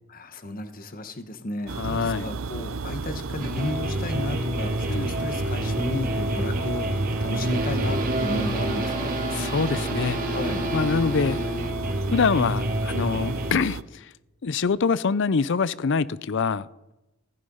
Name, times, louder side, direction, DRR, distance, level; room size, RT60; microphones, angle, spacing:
voice 1, 0.1-9.2 10.3-10.7, left 1 dB, 45° left, 1.3 m, -33 dB
sound 1, 1.7-13.8, right 4 dB, 75° right, 0.6 m, -34 dB
voice 2, 1.8-2.3 4.9-5.1 9.3-10.2 10.7-11.4 12.1-14.1 14.4-16.7, left 5 dB, 60° left, 0.5 m, -25 dB
sound 2, 3.4-13.5, right 1 dB, 45° right, 2.1 m, -28 dB
Bowed string instrument, 8.2-12.3, equal, 15° left, 0.6 m, -34 dB
16.0 x 14.0 x 5.5 m
head